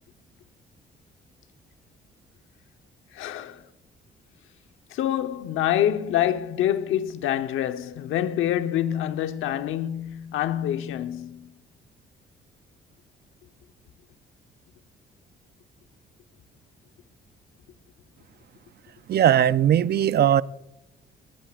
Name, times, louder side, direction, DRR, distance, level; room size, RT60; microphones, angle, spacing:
voice 1, 3.1-3.6 4.9-11.5, left 11 dB, 90° left, 1.0 m, -26 dB
voice 2, 19.1-20.4, right 10 dB, 55° right, 0.6 m, -19 dB
19.0 x 18.5 x 2.5 m
cardioid pair, 90°, 20 cm